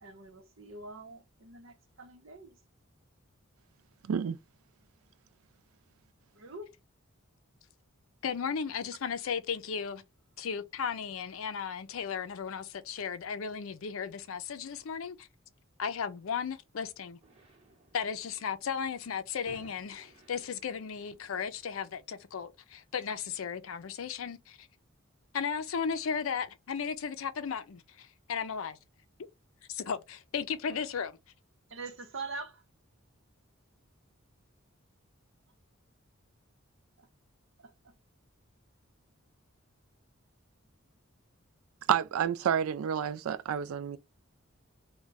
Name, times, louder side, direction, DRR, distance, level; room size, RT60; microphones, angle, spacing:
voice 1, 0.0-2.6 6.3-6.7 31.7-32.6 37.0-37.1 37.6-37.7, right 3 dB, 65° right, 0.8 m, -44 dB
voice 2, 4.0-4.4 41.9-44.0, right 8 dB, 90° right, 0.3 m, -29 dB
voice 3, 8.2-10.0 10.4-15.3 15.8-17.2 17.9-24.7 25.3-28.8 29.7-31.2, left 6 dB, 75° left, 0.5 m, -35 dB
sound 1, 17.2-22.4, right 1 dB, 30° right, 1.1 m, -60 dB
2.4 x 2.2 x 3.9 m
head